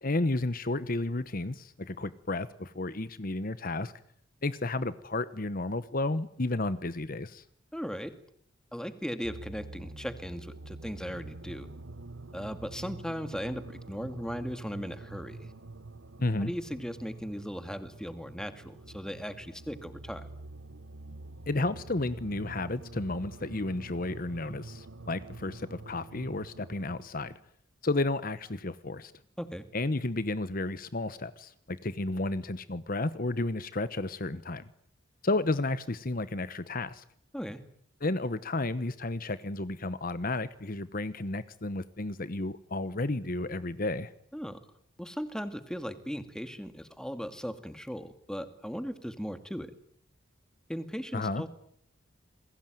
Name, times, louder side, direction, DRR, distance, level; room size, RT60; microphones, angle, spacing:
voice 1, 0.0-3.9 4.4-7.4 16.2-16.5 21.5-27.4 27.8-29.1 29.7-34.7 35.2-37.0 38.0-44.1 51.1-51.4, left 2 dB, 45° left, 15 dB, 1.1 m, -32 dB
voice 2, 7.7-8.2 8.7-11.7 12.3-15.5 16.4-20.3 29.4-29.6 37.3-37.6 44.3-44.6 45.0-49.7 50.7-51.5, equal, 5° left, 10 dB, 2.3 m, -37 dB
sound 1, 9.2-27.1, right 2 dB, 70° right, 1.3 m, -46 dB
28.5 x 21.5 x 9.3 m, 0.65 s
head